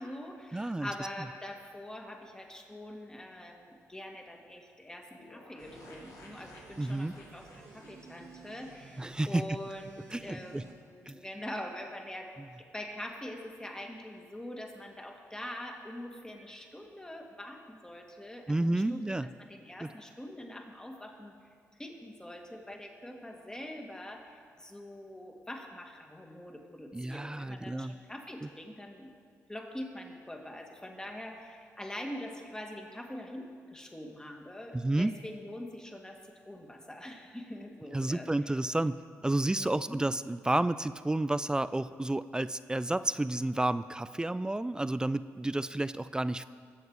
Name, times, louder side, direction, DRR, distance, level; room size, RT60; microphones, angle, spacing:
voice 1, 0.0-12.3 12.6-21.3 21.7-29.1 29.5-38.5 39.5-40.0, left 1 dB, 10° left, 2 dB, 2.0 m, -44 dB
voice 2, 0.5-0.9 6.8-7.1 9.0-9.4 10.1-10.6 11.1-11.2 18.5-19.3 19.8-19.9 26.9-28.0 28.4-28.5 34.7-35.1 37.9-39.0 39.2-46.4, right 2 dB, 15° right, 15 dB, 0.4 m, -31 dB
sound 1, 5.2-9.8 10.1-10.2 10.4-10.5, left 2 dB, 65° left, 2.5 m, -55 dB
sound 2, 5.6-10.7, right 4 dB, 80° right, 1.8 m, -53 dB
21.0 x 7.4 x 4.8 m, 2.1 s
cardioid pair, 65°, 6 cm